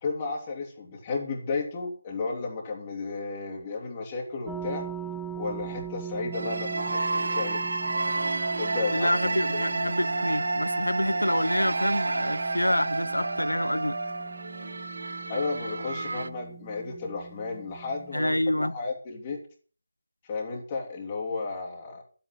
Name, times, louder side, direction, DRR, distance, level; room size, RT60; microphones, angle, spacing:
voice 1, 0.0-4.9 5.3-7.0 7.3-7.6 8.6-9.1 9.5-9.7 15.3-19.4 20.3-22.0, left 4 dB, 25° left, 2.6 m, -33 dB
sound 1, 4.5-18.6, right 8 dB, ahead, 0.7 m, -42 dB
sound 2, 6.3-16.3, right 2 dB, 60° right, 0.6 m, -30 dB
voice 2, 8.9-14.0 18.1-18.8, left 1 dB, 90° left, 0.6 m, -27 dB
11.5 x 8.6 x 7.6 m
figure-of-eight pair, 155°, 0 cm